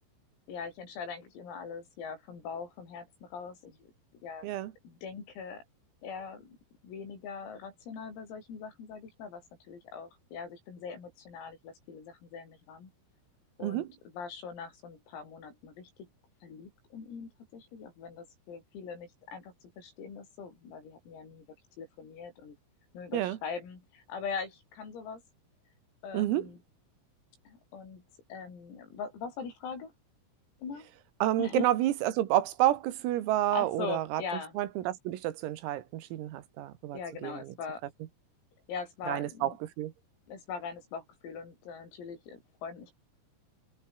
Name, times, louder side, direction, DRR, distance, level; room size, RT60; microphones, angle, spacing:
voice 1, 0.5-3.9 4.2-4.5 4.8-5.6 6.0-6.6 6.8-12.9 13.6-13.9 14.1-16.1 16.4-21.5 21.8-22.6 22.9-25.2 26.0-26.6 27.5-28.0 28.3-29.9 30.6-30.9 31.4-31.7 33.5-34.6 36.9-37.8 38.7-39.6 40.3-42.9, left 5 dB, 80° left, 9.7 m, -41 dB
voice 2, 26.1-26.5 31.2-34.2 34.6-37.5 39.1-39.9, right 14 dB, 85° right, 4.5 m, -29 dB
omnidirectional pair, 6.0 m